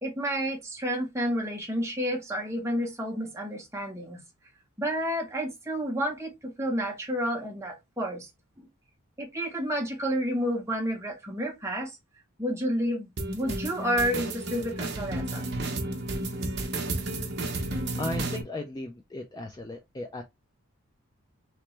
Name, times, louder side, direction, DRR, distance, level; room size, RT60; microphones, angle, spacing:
voice 1, 0.0-4.2 4.8-8.3 9.2-11.9 12.4-13.1 13.3-15.5, equal, 10° right, 0.9 m, -30 dB
sound 1, 13.2-18.4, right 2 dB, 50° right, 0.7 m, -32 dB
voice 2, 18.0-20.2, left 2 dB, 15° left, 0.3 m, -36 dB
3.2 x 2.9 x 3.0 m
head